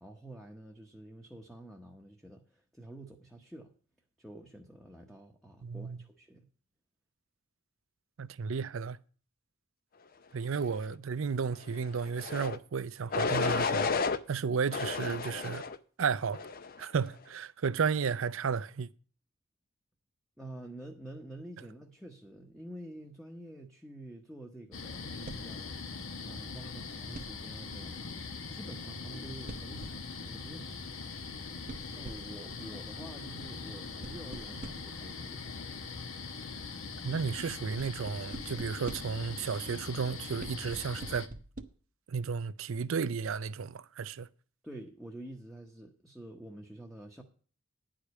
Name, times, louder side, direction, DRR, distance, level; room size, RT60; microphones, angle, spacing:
voice 1, 0.0-3.7 4.2-6.5 20.4-30.8 31.9-35.5 44.6-47.2, right 1 dB, ahead, 0.9 m, -48 dB
voice 2, 5.6-6.0 8.2-9.0 10.3-13.9 14.3-15.6 16.0-16.4 16.8-18.9 37.0-41.3 42.1-44.3, right 5 dB, 65° right, 0.5 m, -33 dB
sound 1, 12.2-12.6 13.1-14.2 14.7-15.8 16.3-16.8, left 4 dB, 45° left, 0.6 m, -31 dB
sound 2, 24.7-41.3, left 4 dB, 70° left, 1.1 m, -42 dB
sound 3, 25.3-25.6 27.1-27.5 29.5-30.2 31.7-32.4 34.0-35.0 37.8-39.3 40.4-41.6, right 2 dB, 40° right, 0.8 m, -45 dB
10.0 x 5.0 x 8.2 m
head